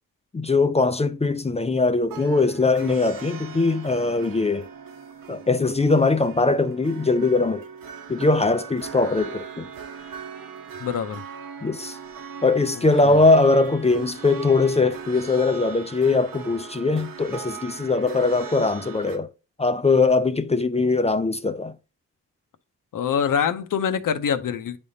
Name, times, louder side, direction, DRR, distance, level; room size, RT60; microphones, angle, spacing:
voice 1, 0.3-4.7 5.3-7.6 8.1-9.7 11.6-12.0 12.4-19.3 19.6-21.7, left 3 dB, 20° left, 0.3 m, -21 dB
sound 1, 2.0-19.2, right 6 dB, 90° right, 0.9 m, -39 dB
voice 2, 10.8-11.2 13.0-13.2 22.9-24.8, left 7 dB, 75° left, 0.7 m, -24 dB
10.5 x 3.5 x 2.7 m
wide cardioid pair, 175°, 33 cm